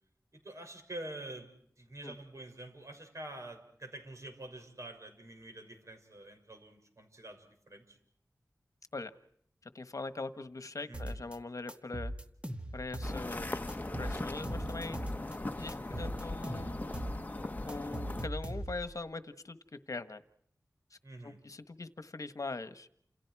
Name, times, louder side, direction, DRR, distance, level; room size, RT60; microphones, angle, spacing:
voice 1, 0.3-1.5 1.8-8.0 10.9-11.2 21.0-21.4, right 1 dB, 55° right, 5 dB, 6.8 m, -47 dB
voice 2, 9.7-12.1 12.7-13.6 14.0-15.0 15.6-16.8 17.6-20.2 20.9-21.0 21.2-22.9, left 3 dB, 65° left, 11 dB, 1.4 m, -41 dB
sound 1, 10.9-11.4 11.7-13.4 13.7-15.4 15.7-17.2 17.4-18.9, equal, 20° right, 2.1 m, -39 dB
sound 2, 13.0-18.3, left 2 dB, 25° left, 1.3 m, -39 dB
29.5 x 28.5 x 4.8 m, 0.67 s
wide cardioid pair, 60°, 6 cm